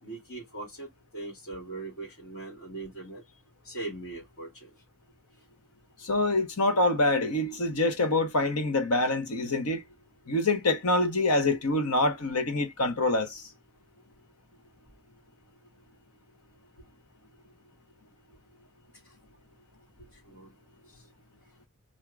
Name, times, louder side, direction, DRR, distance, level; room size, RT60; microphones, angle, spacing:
voice 1, 0.0-0.9 1.1-3.2 3.6-4.7 20.3-20.5, right 2 dB, 65° left, 2.4 m, -40 dB
voice 2, 6.0-9.8 10.3-13.4, left 2 dB, 85° left, 1.2 m, -26 dB
3.6 x 2.8 x 4.8 m
head